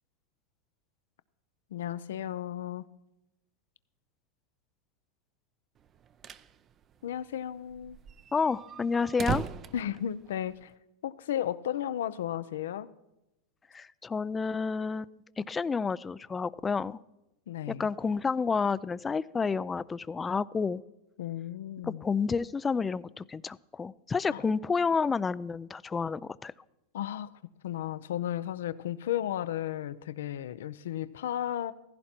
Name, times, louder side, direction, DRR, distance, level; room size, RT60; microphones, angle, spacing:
voice 1, 1.7-2.8 7.0-8.0 9.7-10.7 11.0-12.9 17.5-17.9 21.2-22.1 24.3-24.4 26.9-27.3 27.6-31.7, left 11 dB, 80° left, 15 dB, 0.6 m, -34 dB
sound 1, 5.9-6.5 6.8-6.9 7.1-7.2 7.7-10.7, right 7 dB, 30° right, 0.6 m, -38 dB
voice 2, 8.3-9.4 13.7-17.0 17.8-20.8 21.8-26.5, left 5 dB, 15° left, 18 dB, 0.4 m, -30 dB
15.5 x 15.0 x 4.4 m, 0.91 s
supercardioid pair, 125°, 0 cm